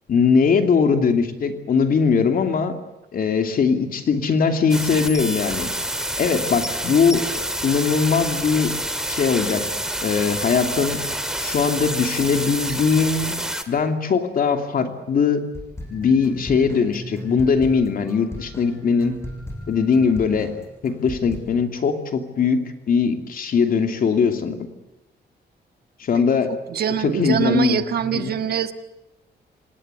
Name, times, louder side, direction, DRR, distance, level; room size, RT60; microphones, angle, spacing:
voice 1, 0.1-2.7 3.1-5.7 6.2-7.3 7.6-8.7 9.1-9.6 10.0-11.0 11.4-13.4 13.7-15.4 15.9-19.1 19.7-20.5 20.8-24.6 26.0-26.5 27.0-27.8 28.1-28.3, left 5 dB, 55° left, 6 dB, 2.7 m, -20 dB
sound 1, 4.7-13.6, right 1 dB, 5° right, 2.0 m, -28 dB
sound 2, 15.5-21.4, equal, 15° left, 7.7 m, -36 dB
voice 2, 26.7-28.7, right 8 dB, 65° right, 9 dB, 1.5 m, -23 dB
27.5 x 19.0 x 8.2 m, 0.96 s
wide cardioid pair, 150°, 17 cm